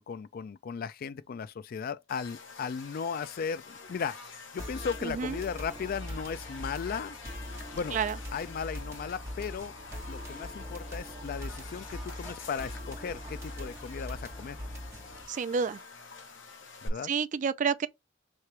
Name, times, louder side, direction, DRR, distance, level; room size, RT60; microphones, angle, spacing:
voice 1, 0.0-7.2 7.7-8.0 8.3-9.7 10.1-14.6 16.8-17.1, left 6 dB, 50° left, 0.3 m, -36 dB
Buzz, 2.1-16.9, left 4 dB, 70° left, 0.9 m, -47 dB
sound 1, 4.6-15.3, equal, 15° right, 1.6 m, -41 dB
voice 2, 5.0-5.4 7.9-8.2 15.3-15.8 17.0-17.9, right 6 dB, 40° right, 0.3 m, -29 dB
3.2 x 2.9 x 4.5 m
head